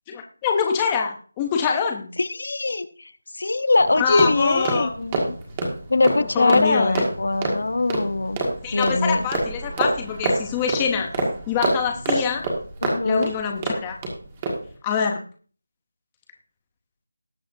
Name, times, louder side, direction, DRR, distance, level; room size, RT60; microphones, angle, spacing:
voice 1, 0.1-2.1 3.9-4.9 6.3-7.0 8.6-11.1 11.5-12.5 13.0-14.0 14.8-15.2, left 6 dB, 10° left, 3 dB, 0.6 m, -25 dB
voice 2, 2.2-2.9 3.3-5.4 5.9-8.4 8.7-9.3 12.8-13.3, left 2 dB, 50° left, 14 dB, 0.7 m, -22 dB
sound 1, 3.8-14.1 14.4-14.7, right 2 dB, 10° right, 1.7 m, -27 dB
19.0 x 7.3 x 2.6 m, 0.41 s
figure-of-eight pair, 180°, 0 cm